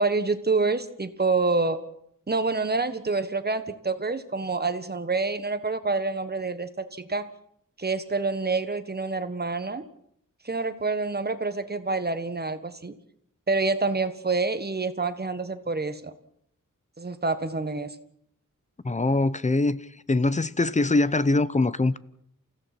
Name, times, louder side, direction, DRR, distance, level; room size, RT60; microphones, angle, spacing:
voice 1, 0.0-1.8 2.3-7.3 7.8-9.8 10.4-12.9 13.5-16.1 17.0-18.0, right 3 dB, 30° right, 1.4 m, -27 dB
voice 2, 18.8-19.8 20.1-22.0, left 2 dB, 20° left, 0.7 m, -23 dB
28.5 x 16.0 x 6.0 m
wide cardioid pair, 130°, 32 cm